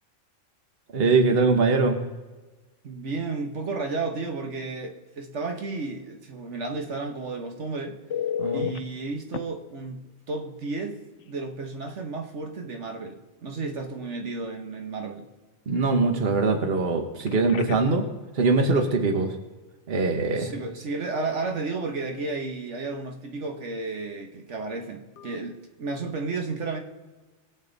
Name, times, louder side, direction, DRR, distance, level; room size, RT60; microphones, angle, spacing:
voice 1, 0.9-2.0 8.4-8.7 15.7-18.1 18.3-19.4 19.9-20.5, right 3 dB, 50° right, 6 dB, 1.4 m, -22 dB
voice 2, 2.8-8.0 8.5-11.0 11.3-15.3 20.4-26.8, right 3 dB, 70° right, 3 dB, 1.5 m, -32 dB
Telephone, 8.1-8.8 9.3-9.4 11.2-11.3 11.7-11.9 17.2-18.0 25.2-25.4, left 9 dB, 70° left, 1.0 m, -32 dB
22.0 x 8.2 x 4.0 m, 1.2 s
omnidirectional pair, 1.3 m